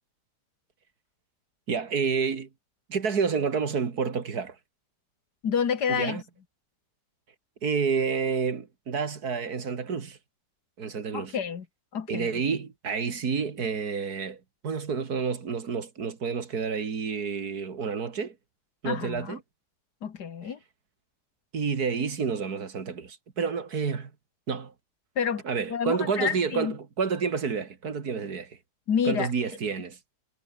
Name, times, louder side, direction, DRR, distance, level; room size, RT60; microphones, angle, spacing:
voice 1, 1.7-2.5 2.9-4.6 5.9-6.2 7.6-10.2 10.8-11.4 12.1-18.4 18.8-19.4 21.5-24.1 24.5-24.7 25.4-28.6 29.1-30.0, right 5 dB, 65° right, 2.5 m, -29 dB
voice 2, 5.4-6.2 11.1-11.7 11.9-12.4 18.8-19.4 20.0-20.6 25.2-25.4 25.7-26.8 28.9-29.3, left 7 dB, 75° left, 2.2 m, -29 dB
omnidirectional pair, 1.8 m